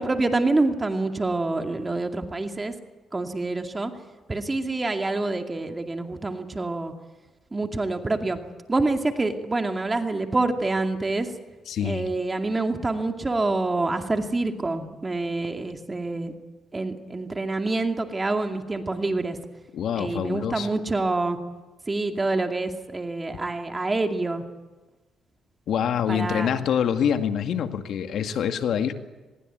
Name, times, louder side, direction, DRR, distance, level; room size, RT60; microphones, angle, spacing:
voice 1, 0.0-2.7 3.1-3.9 4.3-6.9 7.5-8.4 8.7-11.3 11.8-16.3 16.7-19.4 20.0-21.4 21.9-24.4 26.1-26.5, right 2 dB, 20° right, 5 dB, 2.4 m, -26 dB
voice 2, 11.7-12.1 19.7-20.7 25.7-28.9, left 8 dB, 70° left, 7 dB, 2.1 m, -25 dB
24.5 x 21.5 x 9.3 m, 1.2 s
cardioid pair, 90°, 0 cm